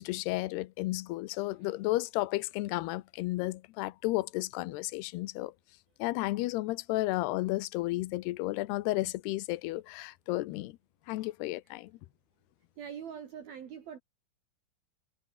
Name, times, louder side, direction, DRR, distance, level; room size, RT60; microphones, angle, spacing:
voice 1, 0.0-5.5 6.0-10.8 11.1-11.9, left 19 dB, 80° left, 2.4 m, -33 dB
voice 2, 12.8-14.0, right 8 dB, 55° right, 3.9 m, -43 dB
omnidirectional pair, 5.6 m